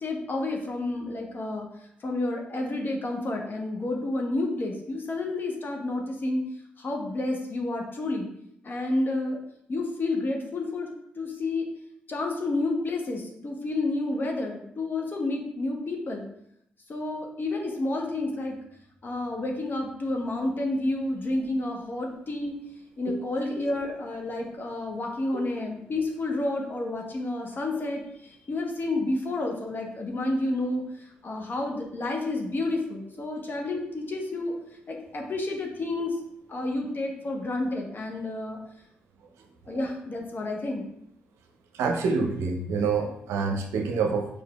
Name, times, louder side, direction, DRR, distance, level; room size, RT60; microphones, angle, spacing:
voice 1, 0.0-1.7 2.0-6.5 6.8-8.3 8.6-9.4 9.7-10.9 11.1-11.7 12.1-16.3 16.9-18.6 19.0-22.5 23.0-34.5 34.9-36.2 36.5-38.6 39.7-40.8, left 2 dB, 45° left, 1 dB, 1.0 m, -30 dB
voice 2, 41.7-44.3, right 4 dB, 80° right, 3 dB, 0.6 m, -27 dB
5.0 x 4.3 x 2.3 m, 0.76 s
hypercardioid pair, 45°, 5 cm